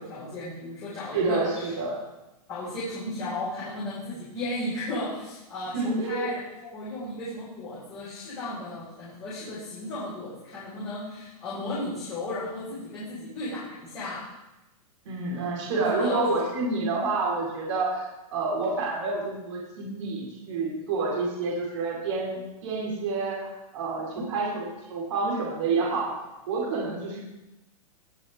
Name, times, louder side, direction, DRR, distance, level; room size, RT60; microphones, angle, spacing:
voice 1, 0.0-1.7 2.5-14.2 15.7-16.2, left 1 dB, 20° left, -12 dB, 5.5 m, -35 dB
voice 2, 1.1-2.0 5.7-6.3 15.0-23.5 23.7-26.1 26.5-27.2, right 3 dB, 50° right, -5 dB, 4.9 m, -28 dB
20.5 x 7.6 x 3.8 m, 0.98 s
hypercardioid pair, 170°, 19 cm